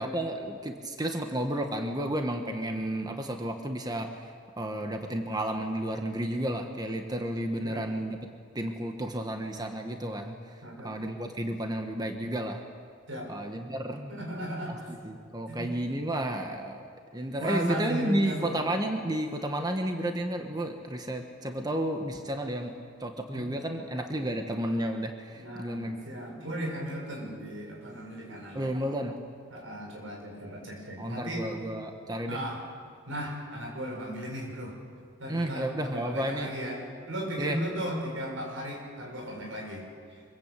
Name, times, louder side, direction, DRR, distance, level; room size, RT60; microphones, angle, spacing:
voice 1, 0.0-4.1 4.6-8.2 8.5-10.3 10.8-12.6 13.3-14.2 15.0-22.7 23.0-26.0 28.5-29.1 31.0-32.4 35.3-36.5 37.4-37.6, right 1 dB, 20° right, 4 dB, 1.5 m, -32 dB
voice 2, 10.6-11.0 13.1-13.3 14.1-14.9 15.5-15.7 17.3-18.7 23.3-23.6 25.3-28.7 29.5-31.5 32.3-32.6 33.1-34.8 35.2-39.8, equal, 90° right, 0 dB, 7.0 m, -36 dB
25.0 x 22.5 x 8.5 m, 2.1 s
head